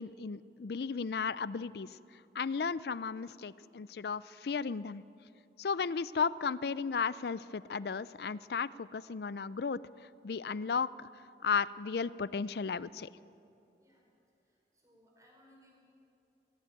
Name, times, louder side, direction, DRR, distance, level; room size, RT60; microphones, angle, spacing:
voice 1, 0.0-2.0 2.3-5.0 5.6-9.8 10.2-11.1 11.4-13.1, left 5 dB, 65° left, 18 dB, 0.4 m, -34 dB
voice 2, 14.4-15.8, equal, 20° right, -2 dB, 5.1 m, -64 dB
17.5 x 17.0 x 9.2 m, 2.9 s
head